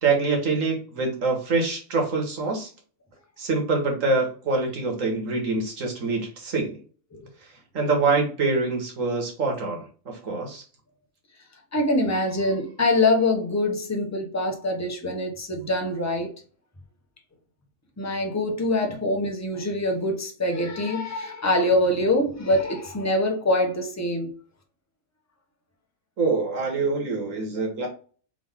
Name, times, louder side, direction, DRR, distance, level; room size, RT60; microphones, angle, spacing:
voice 1, 0.0-2.7 3.4-6.8 7.7-10.6 26.2-27.9, right 3 dB, 70° right, 1.8 m, -25 dB
voice 2, 11.7-16.3 18.0-24.3, left 1 dB, 15° left, 0.8 m, -24 dB
3.8 x 3.5 x 3.4 m
omnidirectional pair, 1.4 m